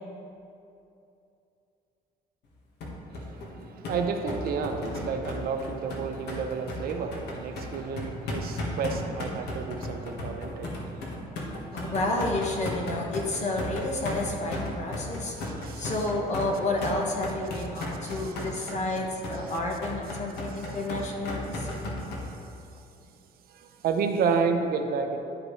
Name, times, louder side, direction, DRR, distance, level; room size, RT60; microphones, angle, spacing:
sound 1, 2.8-22.2, left 2 dB, 75° left, 1.5 m, -35 dB
voice 1, 3.1-11.9 15.4-15.9 17.8-18.7 20.6-20.7 21.6-21.9 23.5-25.2, right 5 dB, 60° right, 5 dB, 0.7 m, -32 dB
voice 2, 11.7-15.3 15.8-22.0, left 2 dB, 45° left, 0 dB, 1.4 m, -30 dB
11.5 x 5.1 x 3.2 m, 2.7 s
cardioid pair, 110°, 17 cm